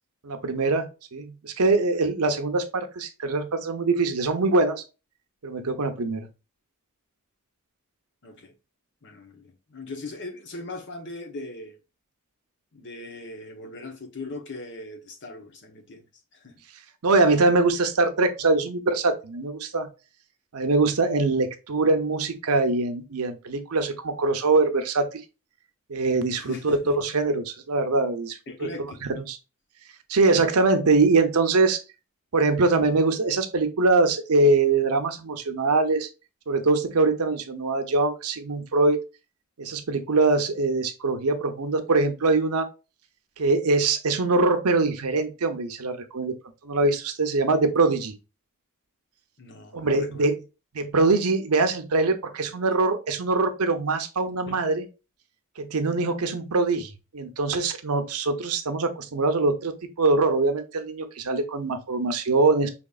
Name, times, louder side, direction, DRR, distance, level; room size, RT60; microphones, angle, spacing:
voice 1, 0.2-4.8 5.4-6.3 17.0-19.9 20.5-25.1 25.9-28.7 29.0-29.4 30.1-31.8 32.3-36.1 36.5-39.0 39.6-42.7 43.4-46.3 46.6-48.1 49.7-50.4 50.7-54.9 55.6-62.7, right 3 dB, 80° right, 0.7 m, -23 dB
voice 2, 8.2-8.5 9.0-11.8 12.7-16.1 16.3-16.6 26.3-27.0 28.5-29.1 49.4-50.3 54.5-54.6, left 2 dB, 55° left, 0.9 m, -40 dB
5.1 x 2.9 x 2.3 m
head